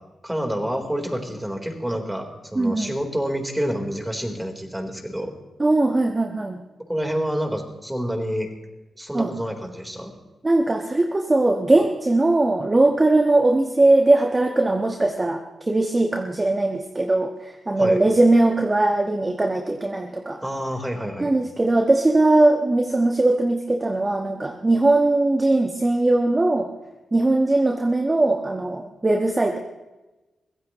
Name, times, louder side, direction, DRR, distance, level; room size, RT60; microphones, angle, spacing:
voice 1, 0.2-5.3 6.9-8.5 9.0-10.1 17.8-18.0 20.4-21.3, equal, 10° right, 3 dB, 3.9 m, -28 dB
voice 2, 2.5-2.9 5.6-6.6 9.1-9.3 10.4-20.4 21.2-26.7 27.1-29.6, right 2 dB, 25° right, 4 dB, 1.4 m, -20 dB
24.0 x 16.0 x 3.1 m, 1.1 s
cardioid pair, 60°, 0 cm